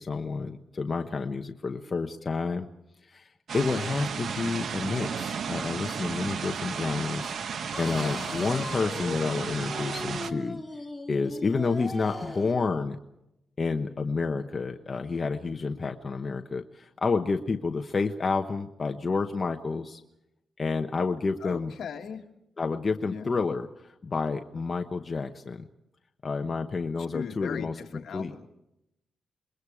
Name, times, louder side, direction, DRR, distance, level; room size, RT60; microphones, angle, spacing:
voice 1, 0.0-2.7 3.0-3.3 3.5-10.6 11.1-13.0 13.6-20.0 20.6-21.7 22.6-25.6 26.2-27.7 28.1-28.3, left 4 dB, 30° left, 5 dB, 1.0 m, -30 dB
sound 1, 3.5-10.3, right 6 dB, 60° right, 1.1 m, -34 dB
voice 2, 7.7-8.2 21.4-22.3 23.0-23.4 27.1-28.5, left 7 dB, 65° left, 4 dB, 2.1 m, -39 dB
sound 2, 7.7-12.6, left 2 dB, 5° left, 3.1 m, -38 dB
28.0 x 21.5 x 4.9 m, 0.86 s
wide cardioid pair, 140°, 0 cm